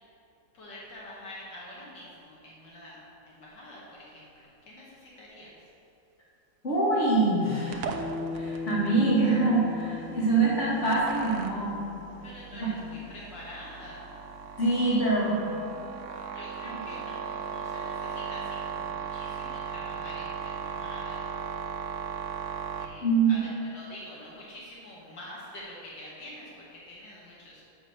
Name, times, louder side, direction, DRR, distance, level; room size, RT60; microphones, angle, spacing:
voice 1, 0.5-5.5 12.2-14.0 14.7-15.0 16.3-21.2 22.8-27.6, left 1 dB, 80° left, -5 dB, 2.0 m, -46 dB
voice 2, 6.6-8.0 8.3-11.8 12.5-12.7 14.6-15.4 23.0-23.4, right 3 dB, 40° left, -8 dB, 2.6 m, -25 dB
sound 1, 7.7-22.9, right 6 dB, 70° right, 1.1 m, -38 dB
Bass guitar, 7.9-12.3, left 4 dB, 10° right, 1.3 m, -39 dB
6.5 x 6.2 x 6.5 m, 3.0 s
omnidirectional pair, 1.9 m